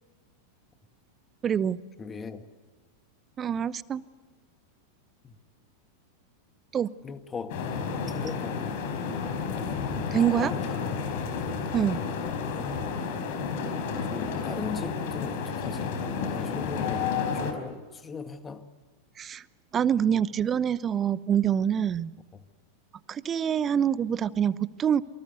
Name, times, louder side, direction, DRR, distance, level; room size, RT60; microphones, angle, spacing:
voice 1, 1.4-1.8 3.4-4.0 6.7-6.9 10.1-10.5 11.7-12.0 19.2-19.4 19.7-22.1 23.1-25.0, right 8 dB, 25° right, 0.8 m, -25 dB
voice 2, 2.0-2.5 5.2-5.4 7.0-7.6 8.1-8.8 10.2-11.1 12.6-12.9 14.1-16.0 16.3-18.7 22.3-22.4, left 5 dB, 20° left, 2.0 m, -39 dB
sound 1, 7.5-17.5, left 5 dB, 50° left, 4.6 m, -31 dB
27.5 x 25.0 x 8.2 m
figure-of-eight pair, 90°, 0 cm